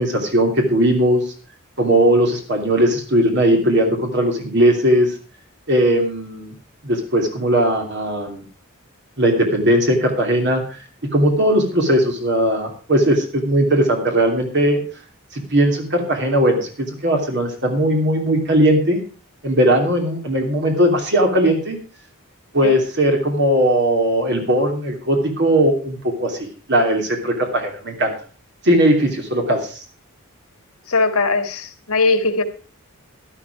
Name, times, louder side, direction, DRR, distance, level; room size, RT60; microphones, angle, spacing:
voice 1, 0.0-1.3 1.8-5.1 5.7-6.5 6.8-8.4 9.2-10.6 11.1-14.8 15.3-19.0 19.4-21.8 22.5-28.1 28.6-29.8, right 1 dB, 55° right, 3 dB, 2.9 m, -18 dB
voice 2, 30.9-32.4, left 3 dB, 80° left, 8 dB, 1.8 m, -19 dB
12.5 x 12.0 x 4.8 m, 0.37 s
head